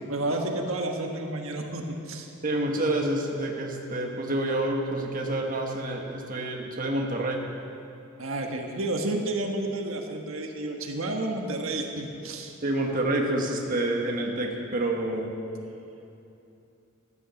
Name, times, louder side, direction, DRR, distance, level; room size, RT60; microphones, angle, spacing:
voice 1, 0.1-2.3 8.2-12.5, right 2 dB, 80° right, 2 dB, 1.4 m, -31 dB
voice 2, 2.4-7.4 12.6-15.3, right 1 dB, 40° right, 1 dB, 1.5 m, -28 dB
15.0 x 11.5 x 7.1 m, 2.8 s
head